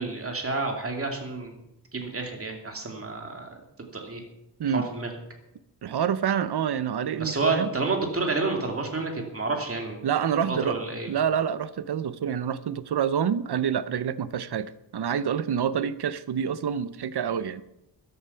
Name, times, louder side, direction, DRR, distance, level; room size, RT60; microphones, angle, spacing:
voice 1, 0.0-1.6 1.9-3.5 3.9-4.2 4.7-5.1 7.1-10.0 10.4-11.1, right 3 dB, 30° right, 3 dB, 2.5 m, -29 dB
voice 2, 5.8-7.7 10.0-10.8 11.1-17.6, right 8 dB, 65° right, 16 dB, 0.7 m, -27 dB
14.0 x 11.0 x 5.7 m, 0.86 s
wide cardioid pair, 150°, 42 cm